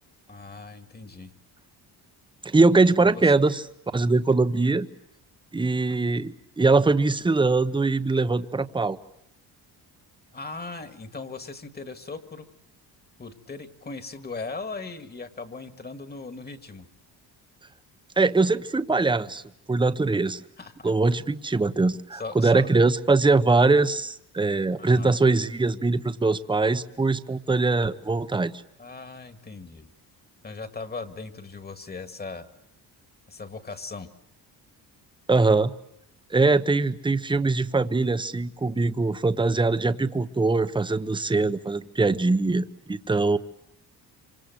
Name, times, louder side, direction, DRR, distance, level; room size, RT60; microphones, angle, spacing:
voice 1, 0.3-1.3 3.1-3.3 10.3-12.5 13.2-16.9 20.6-20.9 22.1-22.7 24.8-25.1 28.8-29.9 30.4-32.5 33.3-34.1, left 4 dB, 25° left, 10 dB, 2.0 m, -38 dB
voice 2, 2.4-3.6 3.9-4.9 5.5-9.0 18.2-19.4 19.7-20.4 20.8-28.5 35.3-35.7 36.3-43.4, right 3 dB, 10° right, 11 dB, 1.0 m, -22 dB
27.0 x 26.0 x 7.9 m, 0.74 s
cardioid pair, 130°, 39 cm